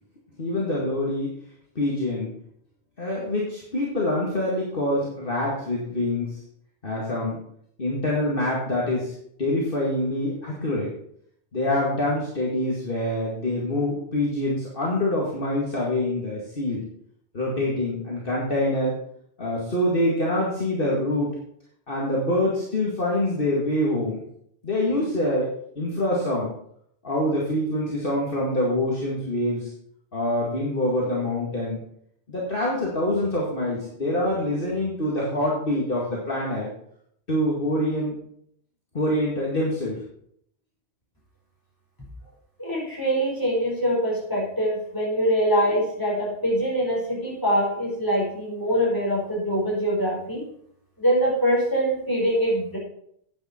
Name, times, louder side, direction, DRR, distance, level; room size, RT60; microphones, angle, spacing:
voice 1, 0.4-1.3 1.8-2.3 3.0-6.4 6.8-7.4 7.8-9.1 9.4-10.9 11.5-16.8 17.3-19.0 19.4-21.3 21.9-24.2 24.6-25.5 25.8-26.5 27.0-29.7 30.1-31.8 32.3-36.7 37.3-38.2 38.9-40.0, left 1 dB, 50° left, -4 dB, 2.2 m, -25 dB
voice 2, 42.6-50.4 51.0-52.8, equal, 15° left, -4 dB, 4.8 m, -24 dB
9.9 x 9.1 x 4.4 m, 0.68 s
omnidirectional pair, 1.2 m